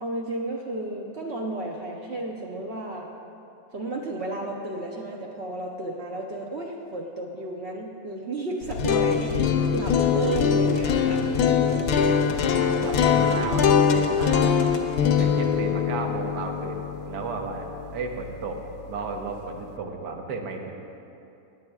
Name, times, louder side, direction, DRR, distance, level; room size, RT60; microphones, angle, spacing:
voice 1, 0.0-3.1 3.7-11.4, right 2 dB, 55° right, -1 dB, 0.8 m, -32 dB
sound 1, 8.6-18.6, left 7 dB, 75° left, 1.1 m, -23 dB
voice 2, 11.9-14.5 15.1-16.8 17.1-17.7 17.9-18.6 18.9-20.7, right 4 dB, 85° right, 2 dB, 1.5 m, -34 dB
19.5 x 7.9 x 2.3 m, 2.7 s
omnidirectional pair, 1.7 m